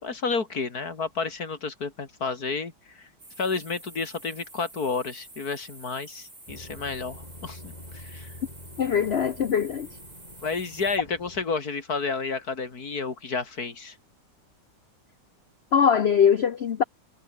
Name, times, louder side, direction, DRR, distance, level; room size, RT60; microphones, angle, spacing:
voice 1, 0.0-3.1 3.4-8.3 10.4-14.0, left 4 dB, 50° left, 3.0 m, -31 dB
sound 1, 3.2-11.0, right 2 dB, 35° right, 5.7 m, -48 dB
sound 2, 6.5-11.4, left 1 dB, 20° left, 4.8 m, -46 dB
voice 2, 8.8-9.9 15.7-16.8, left 7 dB, 80° left, 0.5 m, -22 dB
omnidirectional pair, 2.1 m